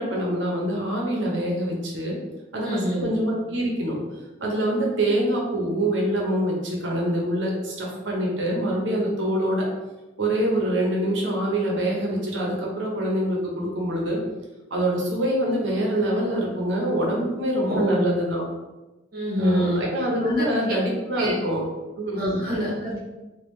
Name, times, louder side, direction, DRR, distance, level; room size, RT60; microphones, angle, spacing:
voice 1, 0.0-2.2 2.5-4.0 4.4-9.7 10.2-14.2 14.7-18.4 19.4-21.7 22.0-22.2, right 1 dB, 80° right, -2 dB, 0.9 m, -25 dB
voice 2, 2.6-3.1 17.6-18.0 19.1-19.8 20.2-20.4 21.2-21.4 22.2-23.0, equal, 50° right, -5 dB, 1.2 m, -26 dB
3.4 x 2.4 x 3.1 m, 1.1 s
head